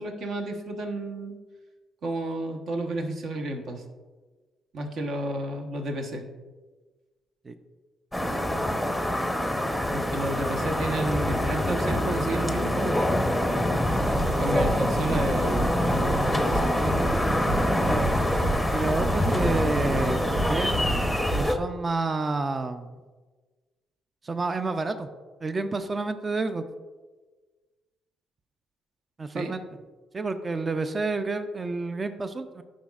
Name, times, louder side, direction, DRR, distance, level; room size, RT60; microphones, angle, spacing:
voice 1, 0.0-1.4 2.0-3.8 4.7-6.3 9.9-13.2 14.4-15.8 16.4-17.0 29.3-29.6, right 1 dB, 65° right, 3 dB, 1.1 m, -31 dB
sound 1, 8.1-21.5, left 1 dB, ahead, 0.7 m, -25 dB
sound 2, 13.9-21.5, right 1 dB, 90° right, 1.0 m, -31 dB
voice 2, 17.8-18.1 18.7-20.9 21.3-22.9 24.2-25.1 25.4-26.6 29.2-29.6 30.1-32.6, right 3 dB, 30° right, 10 dB, 0.4 m, -29 dB
11.0 x 5.2 x 2.4 m, 1.3 s
cardioid pair, 90°, 0 cm